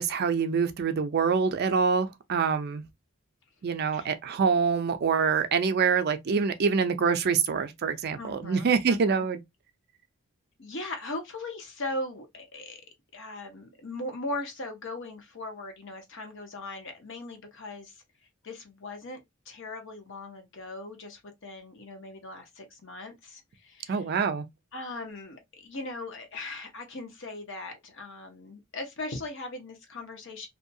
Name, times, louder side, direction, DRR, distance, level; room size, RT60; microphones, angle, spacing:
voice 1, 0.0-2.8 3.6-9.4 23.9-24.5, right 5 dB, 50° right, 0.4 m, -25 dB
voice 2, 8.2-9.3 10.6-12.8 13.1-18.0 18.4-19.2 19.5-24.0 24.7-30.5, left 2 dB, 65° left, 0.9 m, -39 dB
2.6 x 2.2 x 2.6 m
head